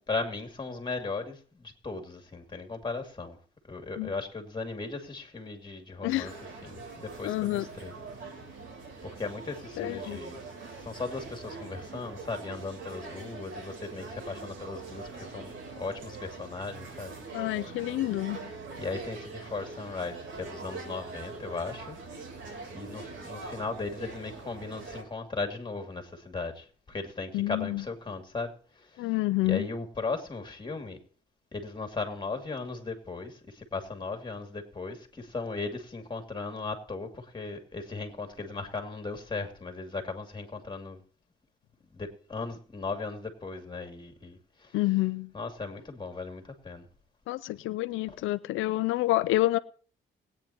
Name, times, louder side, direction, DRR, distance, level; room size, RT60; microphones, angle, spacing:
voice 1, 0.1-3.4 3.7-6.3 6.6-7.9 8.2-8.6 9.0-10.4 10.8-17.7 18.8-22.0 22.7-29.1 29.4-31.0 31.5-41.0 41.9-44.8 45.3-46.9 48.1-48.2, left 3 dB, 25° left, 2.5 m, -37 dB
sound 1, 6.1-25.0, right 3 dB, 85° right, 3.5 m, -43 dB
voice 2, 7.2-7.6 9.8-10.2 17.3-18.5 27.3-27.8 29.0-29.6 44.7-45.3 47.3-49.6, left 17 dB, 85° left, 0.5 m, -28 dB
21.0 x 9.1 x 2.9 m
cardioid pair, 90°, 20 cm